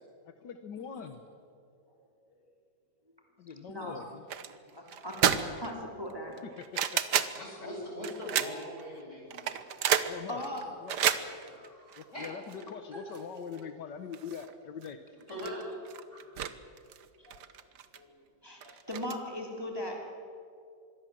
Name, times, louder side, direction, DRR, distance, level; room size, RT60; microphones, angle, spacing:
voice 1, 0.3-1.2 3.4-4.3 6.4-7.3 10.0-10.4 10.8-11.0 12.2-15.0, left 7 dB, 80° left, 8 dB, 1.7 m, -43 dB
voice 2, 3.5-4.1 4.7-6.4 10.3-10.6 17.2-17.4 17.9-18.1 18.4-20.3, left 1 dB, 15° right, 0 dB, 3.0 m, -39 dB
sound 1, 4.3-4.5 4.9-5.7 6.1-7.4 8.0-8.8 9.3-12.7 13.1-13.2 13.6-13.7 14.1-14.5 14.8-14.9 15.2-16.5 16.8-18.0 18.6-19.2, right 9 dB, 75° right, 1.6 m, -30 dB
voice 3, 7.4-9.6 11.4-12.6 12.9-13.0 15.3-15.8 16.1-16.2, equal, 40° left, -2 dB, 8.1 m, -41 dB
26.0 x 22.0 x 7.6 m, 2.5 s
omnidirectional pair, 1.9 m